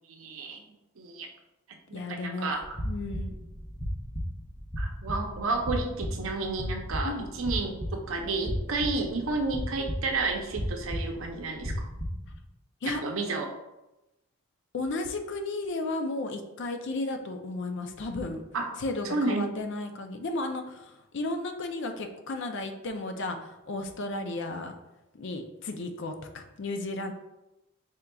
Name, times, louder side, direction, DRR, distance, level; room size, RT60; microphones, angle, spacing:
voice 1, 0.1-0.6 1.0-1.3 1.9-2.8 4.8-11.9 12.9-13.5 18.5-18.7 19.1-19.6, right 3 dB, 75° right, 3 dB, 0.6 m, -31 dB
voice 2, 1.9-2.5 2.8-3.3 7.0-7.3 12.8-13.0 14.7-18.4 18.8-24.8 25.1-27.1, left 2 dB, 60° left, 5 dB, 0.5 m, -34 dB
sound 1, 2.6-12.4, equal, 10° left, 0.6 m, -35 dB
4.4 x 3.7 x 2.3 m, 0.96 s
head